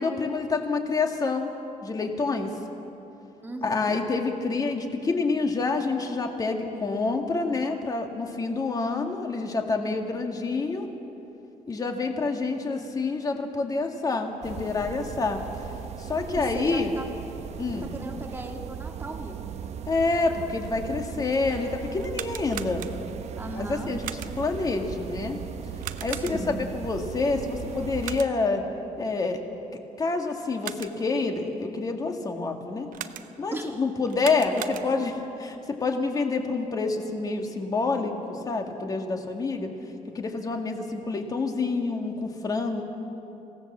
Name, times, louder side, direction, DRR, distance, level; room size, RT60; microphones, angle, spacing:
voice 1, 0.0-1.5 1.8-2.5 3.6-10.9 11.7-15.4 16.0-16.9 17.6-17.9 19.9-22.8 23.6-25.4 26.0-28.6 29.0-29.4 30.0-32.9 33.4-39.7 40.1-42.8, left 3 dB, 30° left, 3 dB, 1.9 m, -27 dB
voice 2, 3.4-4.0 16.4-17.1 17.9-19.5 23.4-23.9 26.1-26.6 33.5-33.8, right 1 dB, 15° right, 2 dB, 1.8 m, -37 dB
sound 1, 14.4-28.2, right 8 dB, 55° right, 0.8 m, -38 dB
sound 2, 22.0-23.3 24.0-24.6 25.8-26.7 28.0-28.6 30.4-31.2 32.9-33.6 34.1-35.2, right 11 dB, 90° right, 0.8 m, -39 dB
26.0 x 17.5 x 7.4 m, 3.0 s
cardioid pair, 155°, 13 cm